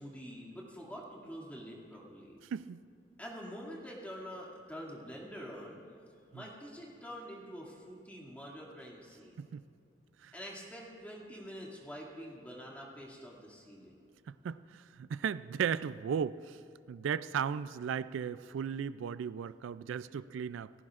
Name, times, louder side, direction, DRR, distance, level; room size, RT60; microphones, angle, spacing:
voice 1, 0.0-2.4 3.2-5.8 6.3-9.5 10.3-13.9, equal, 10° left, -4 dB, 2.3 m, -46 dB
voice 2, 2.4-2.8 6.3-6.4 9.4-9.6 10.2-10.3 14.3-16.6 16.9-20.7, right 7 dB, 85° right, 16 dB, 0.3 m, -36 dB
29.0 x 14.5 x 2.5 m, 2.7 s
head